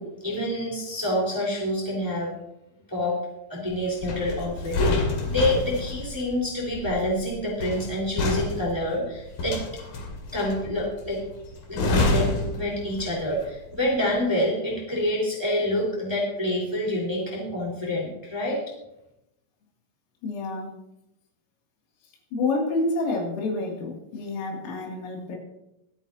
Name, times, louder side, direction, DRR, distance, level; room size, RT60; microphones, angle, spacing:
voice 1, 0.0-2.3 2.9-3.2 3.5-9.6 10.3-11.2 11.7-18.6, left 1 dB, 5° right, -3 dB, 3.4 m, -27 dB
sound 1, 4.0-13.4 13.7-13.9, left 2 dB, 50° left, 3.4 m, -28 dB
voice 2, 20.2-20.7 22.3-25.4, left 2 dB, 90° left, -1 dB, 5.4 m, -28 dB
24.5 x 9.0 x 2.8 m, 0.85 s
omnidirectional pair, 5.7 m